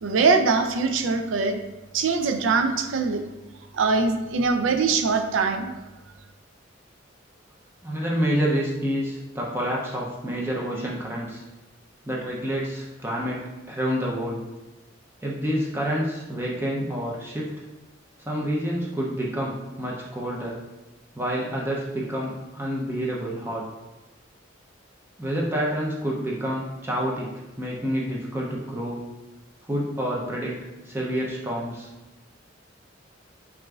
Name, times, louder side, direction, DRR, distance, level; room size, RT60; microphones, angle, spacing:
voice 1, 0.0-1.6 1.9-3.2 3.7-5.7, right 4 dB, 75° right, 7 dB, 0.4 m, -22 dB
voice 2, 7.8-11.4 12.1-14.4 15.2-17.6 18.3-20.6 21.2-23.7 25.2-27.3 27.6-29.0 29.7-30.6 30.8-31.9, equal, 10° right, -3 dB, 0.5 m, -28 dB
6.0 x 2.5 x 2.3 m, 1.1 s
head